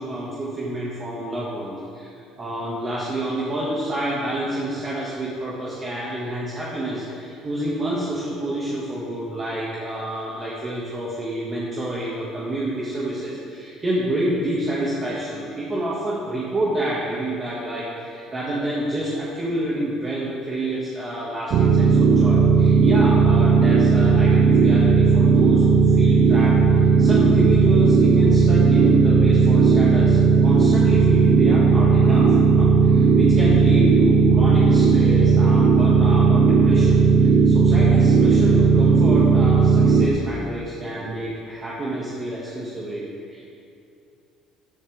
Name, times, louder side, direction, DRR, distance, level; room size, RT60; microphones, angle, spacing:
voice 1, 0.0-2.1 2.4-13.4 13.8-43.4, right 1 dB, 25° right, -6 dB, 2.0 m, -28 dB
sound 1, 21.5-40.1, right 5 dB, 50° right, 0.7 m, -16 dB
15.0 x 11.0 x 3.6 m, 2.5 s
cardioid pair, 135°, 0 cm